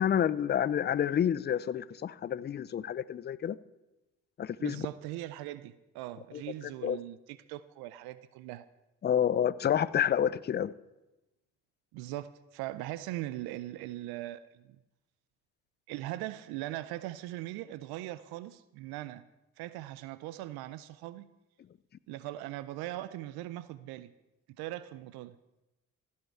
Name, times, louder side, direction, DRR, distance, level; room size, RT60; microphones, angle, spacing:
voice 1, 0.0-3.6 4.4-4.8 6.3-6.4 6.8-7.0 9.0-10.7, left 9 dB, 25° left, 18 dB, 0.4 m, -29 dB
voice 2, 4.6-8.6 11.9-14.8 15.9-19.2 19.6-21.3 22.1-24.1 24.6-25.4, right 15 dB, 75° right, 15 dB, 0.5 m, -40 dB
15.5 x 5.7 x 4.5 m, 0.98 s
hypercardioid pair, 55°, 38 cm